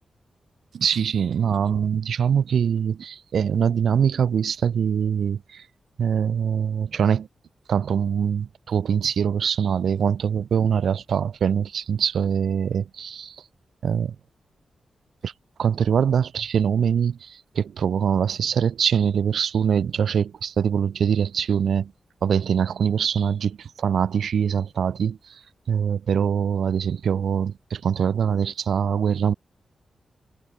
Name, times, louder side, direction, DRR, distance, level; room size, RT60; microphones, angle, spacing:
voice 1, 0.7-5.7 6.0-7.3 7.7-13.4 13.8-14.2 15.2-15.3 15.6-21.9 22.2-29.3, right 7 dB, 75° right, 6.5 m, -23 dB
cardioid pair, 80°, 0 cm